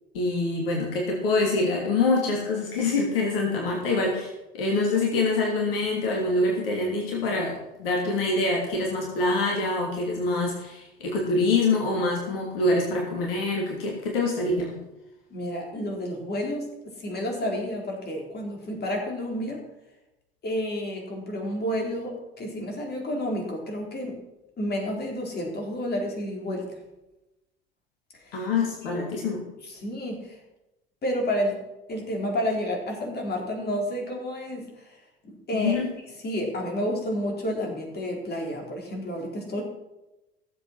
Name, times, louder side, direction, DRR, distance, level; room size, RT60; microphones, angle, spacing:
voice 1, 0.1-14.8 28.3-29.4 35.5-35.9, left 3 dB, 70° left, -1 dB, 3.0 m, -25 dB
voice 2, 15.3-19.7 20.4-24.2 24.6-26.7 28.2-28.4 28.9-29.0 29.7-30.4 31.0-35.0 35.2-35.8 36.2-39.6, equal, 35° left, 0 dB, 4.3 m, -30 dB
16.0 x 7.8 x 6.0 m, 0.98 s
figure-of-eight pair, 65°, 29 cm